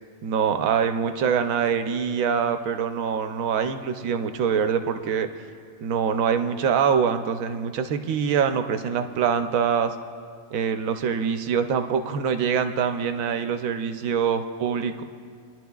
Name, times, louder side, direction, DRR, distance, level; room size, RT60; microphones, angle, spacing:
voice 1, 0.2-5.3 5.8-9.9 10.5-15.0, right 7 dB, 70° right, 8 dB, 1.0 m, -24 dB
26.0 x 11.0 x 2.3 m, 2.2 s
omnidirectional pair, 1.5 m